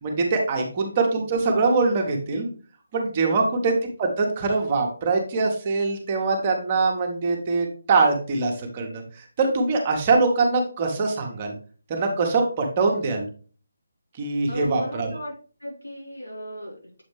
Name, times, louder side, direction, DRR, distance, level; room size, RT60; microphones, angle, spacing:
voice 1, 0.0-2.5 2.9-9.0 9.4-11.5 11.9-13.3 14.2-15.1, right 3 dB, 30° right, 2 dB, 1.1 m, -23 dB
voice 2, 3.3-3.6 14.5-15.3 15.6-17.0, equal, 85° left, -4 dB, 3.3 m, -36 dB
7.5 x 4.1 x 3.2 m, 0.40 s
figure-of-eight pair, 150°, 0 cm